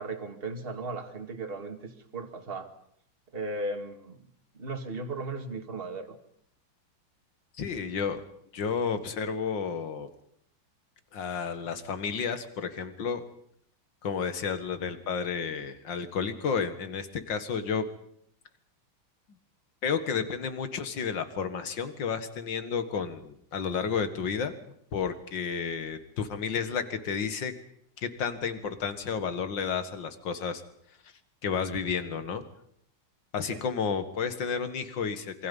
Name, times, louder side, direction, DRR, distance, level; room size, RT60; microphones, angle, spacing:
voice 1, 0.0-2.7 3.3-4.3 4.5-6.2 33.5-33.6, right 2 dB, 30° right, 5 dB, 2.2 m, -36 dB
voice 2, 7.6-8.2 8.5-10.1 11.1-13.2 14.0-17.9 19.8-24.6 24.9-27.5 28.0-30.6 31.4-32.4 33.3-35.5, left 6 dB, 60° left, 9 dB, 2.4 m, -31 dB
27.5 x 24.0 x 5.5 m, 0.69 s
omnidirectional pair, 2.3 m